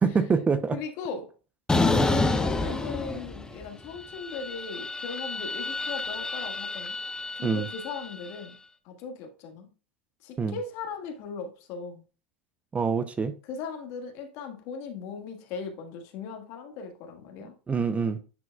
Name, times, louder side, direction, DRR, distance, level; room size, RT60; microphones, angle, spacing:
voice 1, 0.0-0.8 7.4-7.7 10.4-10.5 12.7-13.3 17.7-18.2, right 5 dB, 20° right, 0.7 m, -25 dB
voice 2, 0.7-1.3 1.9-7.0 7.3-8.5 8.8-9.7 10.2-12.1 13.4-17.6, left 5 dB, 60° left, 1.6 m, -38 dB
sound 1, 1.7-3.7 4.0-8.3, left 2 dB, 10° left, 0.7 m, -29 dB
9.5 x 4.7 x 2.3 m
hypercardioid pair, 95°, 6 cm